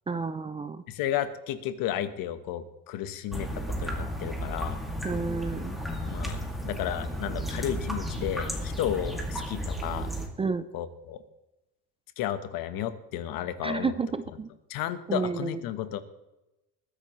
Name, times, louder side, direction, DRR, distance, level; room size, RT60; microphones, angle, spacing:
voice 1, 0.1-0.8 5.0-5.8 10.4-10.7 13.6-14.5 15.1-15.6, right 4 dB, 15° right, 12 dB, 0.4 m, -30 dB
voice 2, 0.9-4.8 6.1-10.1 10.7-11.2 12.2-13.9 14.7-16.0, left 11 dB, 70° left, 11 dB, 1.2 m, -33 dB
sound 1, 3.3-10.3, equal, ahead, 2.2 m, -33 dB
21.0 x 10.0 x 3.1 m, 0.98 s
cardioid pair, 125°, 37 cm